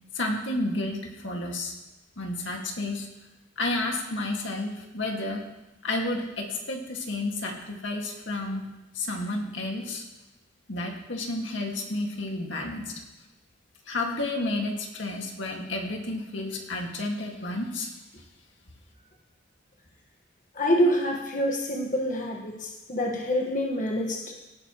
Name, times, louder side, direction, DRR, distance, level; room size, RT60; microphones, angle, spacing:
voice 1, 0.1-1.7 2.2-3.1 3.6-5.5 5.8-8.7 8.9-10.0 10.7-12.9 13.9-17.9, left 2 dB, 75° left, 1 dB, 2.1 m, -31 dB
voice 2, 20.5-24.3, equal, 45° left, 0 dB, 1.5 m, -26 dB
17.5 x 12.5 x 3.1 m, 1.0 s
head